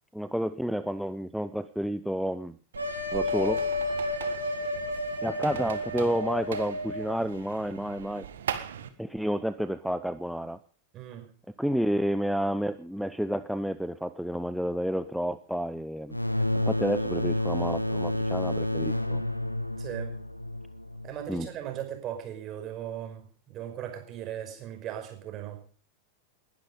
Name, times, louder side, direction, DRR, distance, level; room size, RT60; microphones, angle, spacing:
voice 1, 0.1-2.6 3.1-3.7 5.2-8.3 9.0-10.6 11.6-16.2 16.5-19.2 21.3-21.5, equal, ahead, 11 dB, 0.7 m, -30 dB
sound 1, 2.7-8.9, right 8 dB, 65° right, 1.7 m, -40 dB
sound 2, 2.7-7.2, left 2 dB, 85° right, 3.8 m, -31 dB
voice 2, 10.9-11.3 19.8-20.2 21.0-25.6, right 10 dB, 35° right, 4 dB, 5.5 m, -38 dB
sound 3, 16.1-21.5, left 1 dB, 90° left, 1.1 m, -30 dB
20.5 x 11.5 x 5.3 m, 0.41 s
figure-of-eight pair, 90°, 0 cm